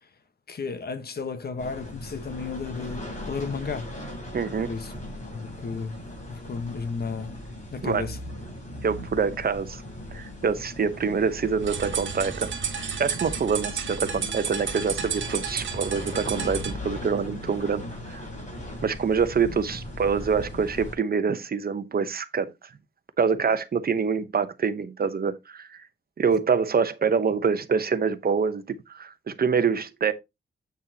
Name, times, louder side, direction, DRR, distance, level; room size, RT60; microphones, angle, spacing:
voice 1, 0.5-3.9 4.6-4.9 5.3-5.9 6.3-7.3 7.7-8.2, left 5 dB, 55° left, 1.2 m, -33 dB
sound 1, 1.6-20.9, left 1 dB, 40° left, 5.2 m, -38 dB
voice 2, 4.3-4.7 7.8-8.0 8.8-9.8 10.1-12.5 12.8-18.2 18.8-22.5 23.2-25.9 26.2-30.1, right 6 dB, 50° right, 0.9 m, -26 dB
sound 2, 11.6-16.8, right 6 dB, 85° right, 1.4 m, -32 dB
8.5 x 6.3 x 2.8 m
wide cardioid pair, 125°, 19 cm